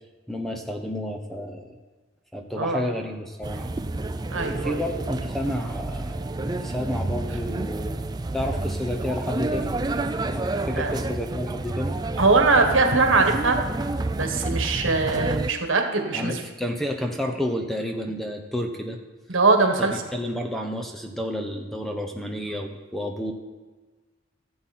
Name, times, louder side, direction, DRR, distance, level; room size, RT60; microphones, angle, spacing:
voice 1, 0.3-1.8 2.3-3.7 4.5-8.0 8.3-9.8 10.3-12.0 16.1-19.0 19.3-19.4 19.8-23.3, equal, ahead, 3 dB, 0.8 m, -30 dB
sound 1, 3.4-15.5, right 2 dB, 20° right, 0.3 m, -29 dB
voice 2, 4.3-4.8 10.8-10.9 12.2-13.6 14.2-16.4 19.3-19.9, right 3 dB, 75° right, 4 dB, 1.5 m, -21 dB
15.0 x 7.7 x 4.3 m, 1.3 s
head